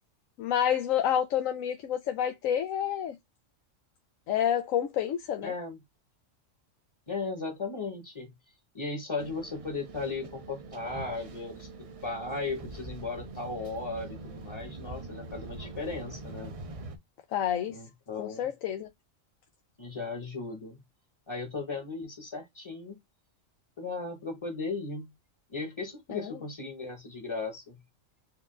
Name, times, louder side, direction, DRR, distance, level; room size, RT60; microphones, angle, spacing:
voice 1, 0.4-3.2 4.3-5.5 17.3-17.8 18.2-18.9 26.1-26.3, left 9 dB, 90° left, 1.0 m, -29 dB
voice 2, 5.4-5.8 7.1-16.5 17.7-18.5 19.8-20.8 21.3-23.0 23.8-25.1 25.5-27.8, left 3 dB, 25° left, 0.8 m, -36 dB
sound 1, 9.2-17.0, right 3 dB, 45° right, 0.4 m, -43 dB
4.7 x 2.3 x 3.6 m
omnidirectional pair, 1.3 m